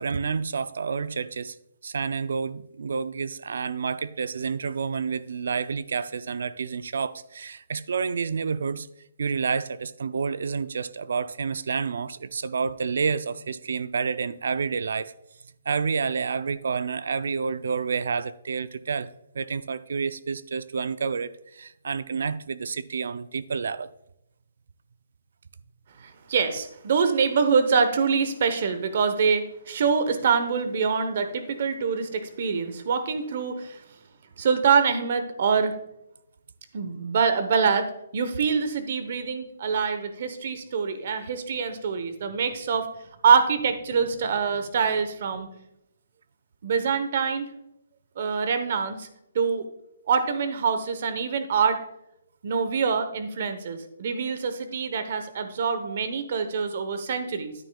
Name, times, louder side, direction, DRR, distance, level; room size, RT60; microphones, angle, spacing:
voice 1, 0.0-1.6 1.8-8.9 9.2-15.1 15.7-23.9, right 5 dB, 70° right, 0.4 m, -29 dB
voice 2, 26.0-33.8 34.4-35.7 36.7-37.9 38.1-42.9 43.2-45.5 46.6-47.5 48.2-49.1 49.3-49.6 50.1-51.8 52.4-57.5, right 6 dB, 45° right, 1.0 m, -25 dB
9.7 x 9.0 x 2.3 m
hypercardioid pair, 165°, 0 cm